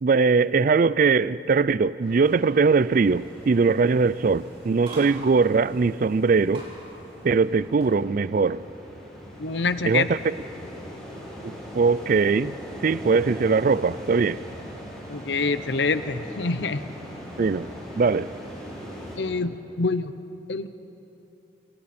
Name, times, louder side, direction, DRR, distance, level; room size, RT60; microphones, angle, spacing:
voice 1, 0.0-6.7 7.2-8.6 9.8-10.3 11.7-12.6 12.8-14.4 17.4-17.7 18.0-18.3, right 4 dB, 50° right, 0.4 m, -21 dB
sound 1, 2.0-19.2, equal, 5° left, 5.4 m, -41 dB
sound 2, 2.1-8.0, right 1 dB, 30° right, 4.5 m, -46 dB
voice 2, 9.4-10.1 15.1-16.8 19.2-20.1 20.5-20.7, left 4 dB, 70° left, 0.8 m, -26 dB
26.0 x 24.5 x 4.3 m
head